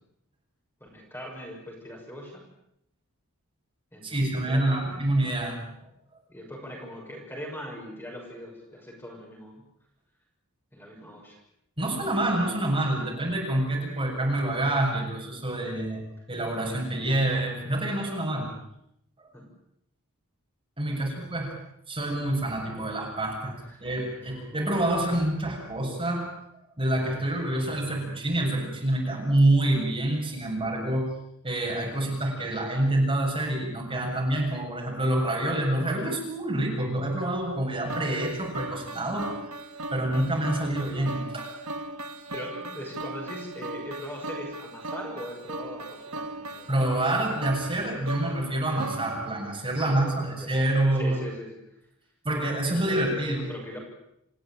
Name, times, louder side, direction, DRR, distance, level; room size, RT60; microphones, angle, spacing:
voice 1, 0.8-2.4 3.9-5.0 6.3-9.6 10.7-11.4 19.3-19.5 20.9-21.2 23.7-23.9 24.2-24.3 42.3-46.7 49.8-50.5 50.9-51.8 52.7-53.8, equal, 10° left, -1 dB, 6.4 m, -41 dB
voice 2, 4.0-5.6 11.8-16.0 16.3-18.5 20.8-21.5 21.9-23.5 23.8-26.3 26.8-31.1 31.4-39.3 39.9-41.5 46.7-51.2 52.2-53.5, right 1 dB, 25° right, -1 dB, 7.4 m, -27 dB
sound 1, 37.9-50.1, right 2 dB, 85° right, 1.7 m, -38 dB
28.5 x 16.0 x 9.0 m, 0.77 s
head